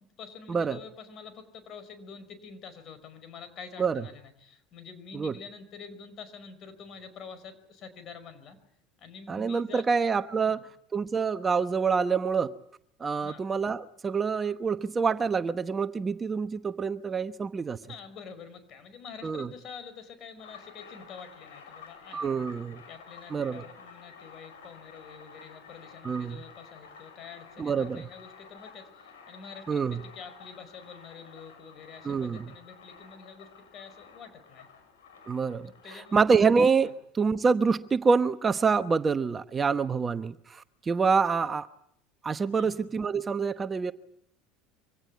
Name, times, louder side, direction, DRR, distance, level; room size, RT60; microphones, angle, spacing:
voice 1, 0.2-8.6 9.0-10.1 10.4-10.6 13.2-13.4 17.9-22.3 22.9-34.7 35.8-36.5 42.4-42.8, left 6 dB, 50° left, 12 dB, 5.3 m, -47 dB
voice 2, 9.3-10.7 10.9-12.5 13.0-17.8 19.2-19.5 22.1-22.8 23.3-23.6 26.0-26.4 27.6-28.1 29.7-30.0 32.0-32.5 35.3-35.7 36.1-41.7 42.2-43.9, right 5 dB, 25° right, 11 dB, 1.0 m, -26 dB
sound 1, 20.4-36.9, left 5 dB, 80° left, 6.5 m, -51 dB
25.0 x 17.0 x 9.5 m, 0.72 s
hypercardioid pair, 80°, 0 cm